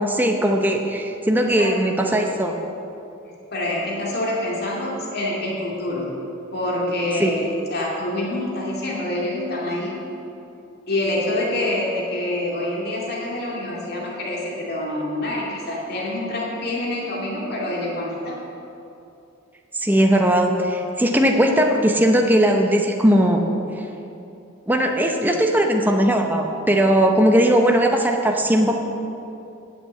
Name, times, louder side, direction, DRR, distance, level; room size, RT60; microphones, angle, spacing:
voice 1, 0.0-2.5 7.2-7.3 19.7-23.4 24.7-28.7, equal, 10° right, 2 dB, 0.7 m, -18 dB
voice 2, 1.4-1.7 3.5-6.1 6.5-10.0 10.9-18.4, left 1 dB, 50° left, -4 dB, 2.4 m, -26 dB
9.4 x 8.2 x 8.4 m, 2.8 s
head